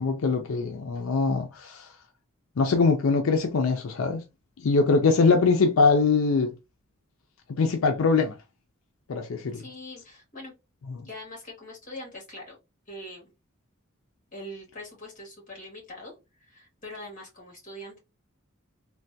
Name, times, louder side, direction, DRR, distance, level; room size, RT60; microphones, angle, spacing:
voice 1, 0.0-1.9 2.6-4.2 4.6-6.5 7.6-8.4 9.1-9.6 11.0-11.1, left 4 dB, 90° left, 0.5 m, -22 dB
voice 2, 9.5-10.5 11.0-12.6 12.9-13.3 14.3-18.0, left 1 dB, 40° left, 1.7 m, -42 dB
3.3 x 2.2 x 2.6 m
head